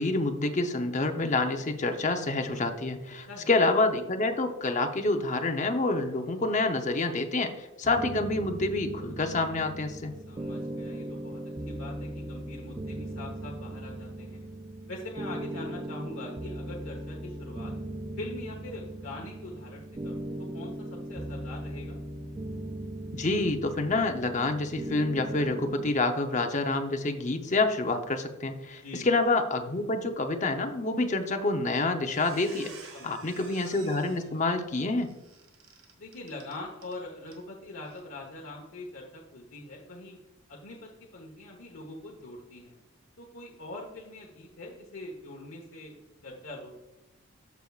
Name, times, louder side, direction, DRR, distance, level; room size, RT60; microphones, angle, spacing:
voice 1, 0.0-10.2 23.1-32.7 33.0-35.1, left 2 dB, 35° left, 6 dB, 0.7 m, -28 dB
voice 2, 3.0-3.5 10.3-14.4 14.9-17.7 18.2-20.2 20.5-22.0 28.8-29.1 32.9-33.5 36.0-40.2 40.5-42.7 43.2-46.7, left 2 dB, 75° left, -2 dB, 1.1 m, -43 dB
sound 1, 7.8-25.9, right 1 dB, 20° right, 0.3 m, -38 dB
Squeak, 31.6-31.7 32.0-37.0 37.3-37.4 37.8-38.0, right 5 dB, 80° right, 2.1 m, -51 dB
14.0 x 4.6 x 2.4 m, 1.0 s
head